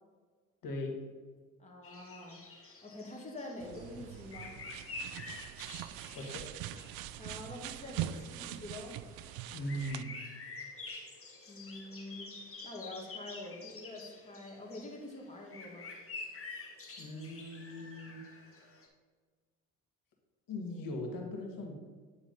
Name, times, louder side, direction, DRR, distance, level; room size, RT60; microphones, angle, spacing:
voice 1, 0.6-1.0 6.1-6.5 9.5-10.1 17.0-18.2 20.5-21.8, left 1 dB, 55° left, 1 dB, 2.0 m, -39 dB
voice 2, 1.6-4.5 7.2-9.0 11.5-15.9, left 1 dB, 20° left, -1 dB, 2.2 m, -46 dB
sound 1, 1.8-18.9, left 3 dB, 35° left, 1.9 m, -49 dB
sound 2, 3.6-10.0, right 12 dB, 65° right, 0.5 m, -43 dB
9.4 x 3.9 x 5.3 m, 1.5 s
hypercardioid pair, 60°, 39 cm